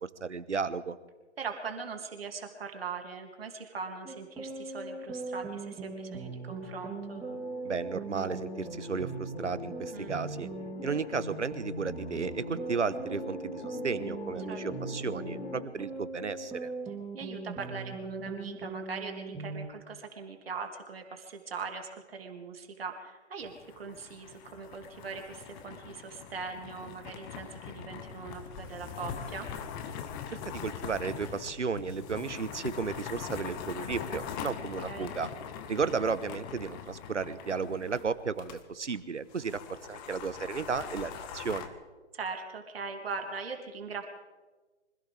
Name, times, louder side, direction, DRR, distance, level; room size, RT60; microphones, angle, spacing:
voice 1, 0.2-1.0 7.6-10.5 10.8-16.7 30.4-35.3 35.7-39.6 39.9-41.7, right 5 dB, 80° right, 15 dB, 1.2 m, -34 dB
voice 2, 1.4-7.2 9.9-10.2 14.5-14.6 17.1-29.5 34.9-35.1 42.1-44.1, right 5 dB, 55° right, 4 dB, 2.7 m, -40 dB
sound 1, 4.0-19.7, right 3 dB, 10° right, 3.1 m, -40 dB
sound 2, 5.0-15.7, left 5 dB, 55° left, 1.4 m, -45 dB
sound 3, 23.4-38.6 38.9-39.0 39.3-41.7, left 7 dB, 20° left, 1.0 m, -42 dB
25.5 x 16.0 x 3.5 m, 1.3 s
figure-of-eight pair, 135°, 35 cm